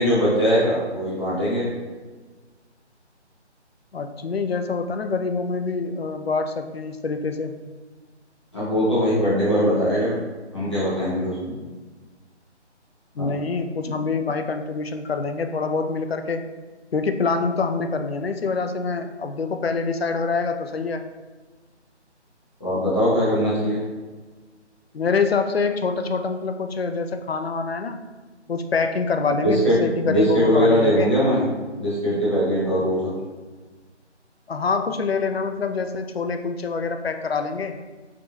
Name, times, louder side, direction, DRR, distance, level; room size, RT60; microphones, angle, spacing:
voice 1, 0.0-1.7 8.5-10.1 10.5-11.5 13.2-13.3 13.8-13.9 22.6-23.8 29.4-31.4 31.7-33.1, equal, 25° left, -10 dB, 1.4 m, -21 dB
voice 2, 3.9-7.5 13.2-16.5 16.9-21.0 24.9-28.0 28.5-31.1 34.5-37.8, left 4 dB, 60° left, 7 dB, 0.5 m, -25 dB
4.9 x 3.5 x 2.7 m, 1.3 s
hypercardioid pair, 180°, 35 cm